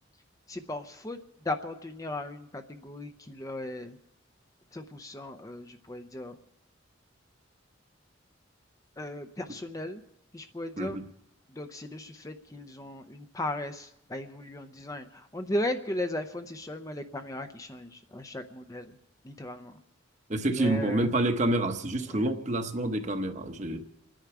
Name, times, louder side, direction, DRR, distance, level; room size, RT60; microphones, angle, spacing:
voice 1, 0.5-4.0 4.7-6.4 9.0-10.0 10.3-11.0 11.5-19.0 19.2-19.8 20.5-21.1 22.1-22.3, left 1 dB, 15° left, 7 dB, 0.6 m, -37 dB
voice 2, 20.3-23.8, right 1 dB, 35° right, 7 dB, 0.9 m, -28 dB
29.0 x 10.0 x 4.8 m, 0.82 s
head